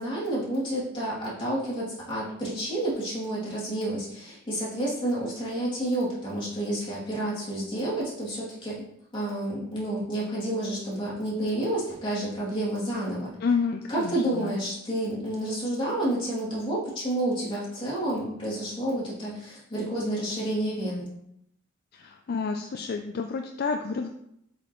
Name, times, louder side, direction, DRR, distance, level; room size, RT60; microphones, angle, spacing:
voice 1, 0.0-8.8 9.1-13.3 13.9-21.1, right 1 dB, 25° left, -7 dB, 2.7 m, -30 dB
voice 2, 13.4-14.6 21.9-24.1, left 5 dB, 50° left, 5 dB, 0.4 m, -30 dB
7.5 x 5.0 x 3.1 m, 0.76 s
head